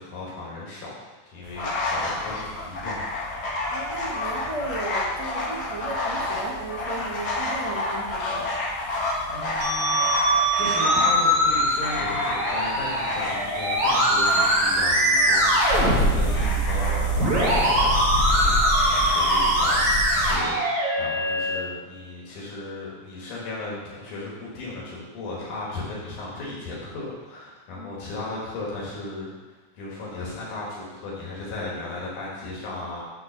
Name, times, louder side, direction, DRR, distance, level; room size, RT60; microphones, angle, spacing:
voice 1, 0.0-3.0 9.3-10.1 10.6-18.5 18.8-33.0, left 2 dB, 85° left, -5 dB, 3.2 m, -36 dB
sound 1, 1.4-20.3, left 2 dB, 45° left, 1.4 m, -29 dB
voice 2, 3.7-8.4 27.8-27.9, right 2 dB, 45° right, -4 dB, 1.9 m, -35 dB
Musical instrument, 9.6-21.6, right 1 dB, 65° right, 3.8 m, -22 dB
9.5 x 3.4 x 6.5 m, 1.2 s
omnidirectional pair, 3.4 m